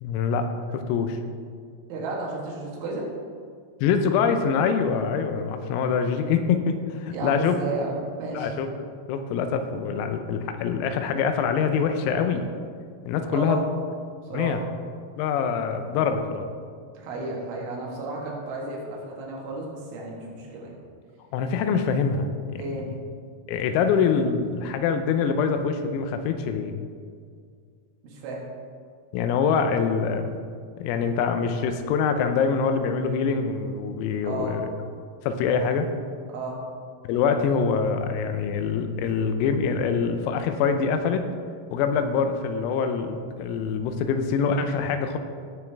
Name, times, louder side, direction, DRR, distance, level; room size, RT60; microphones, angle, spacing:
voice 1, 0.0-1.2 3.8-7.6 8.4-8.7 9.1-12.5 13.1-13.6 14.3-14.6 15.2-16.5 21.3-22.8 23.5-26.8 29.1-30.4 30.8-34.7 35.2-35.9 37.1-41.3 41.7-45.2, left 6 dB, 90° left, 7 dB, 3.5 m, -24 dB
voice 2, 1.9-3.1 7.1-8.5 13.3-13.6 14.3-14.6 17.0-20.7 22.6-22.9 28.0-28.4 34.2-34.6 36.3-36.6, right 3 dB, 70° right, -3 dB, 3.9 m, -33 dB
16.0 x 7.2 x 3.4 m, 2.1 s
omnidirectional pair, 6.0 m